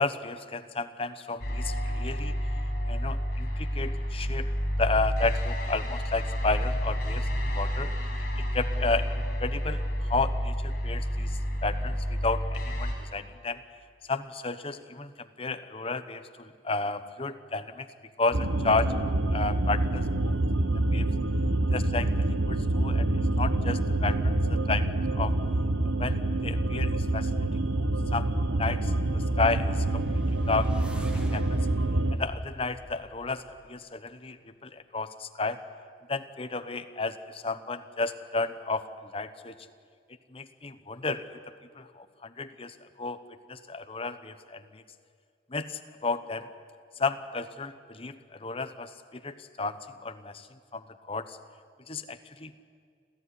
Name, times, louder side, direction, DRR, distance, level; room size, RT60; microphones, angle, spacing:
voice 1, 0.0-2.3 2.9-4.5 4.8-7.9 8.4-13.6 14.1-17.9 18.2-18.9 19.3-20.3 20.9-21.1 21.7-23.1 23.4-25.3 25.8-28.3 28.6-30.1 30.5-30.7 31.0-31.6 32.1-33.4 33.7-35.6 36.1-39.5 40.3-41.2 41.7-43.2 43.5-44.8 45.5-46.5 47.0-50.5 50.7-51.4 51.9-52.6, left 3 dB, 30° left, 11 dB, 1.0 m, -32 dB
sound 1, 1.4-12.9, equal, 50° left, 5.7 m, -30 dB
sound 2, 18.3-32.2, right 2 dB, 90° right, 1.1 m, -26 dB
sound 3, 29.7-33.9, equal, 5° right, 1.4 m, -45 dB
26.5 x 15.5 x 10.0 m, 2.2 s
head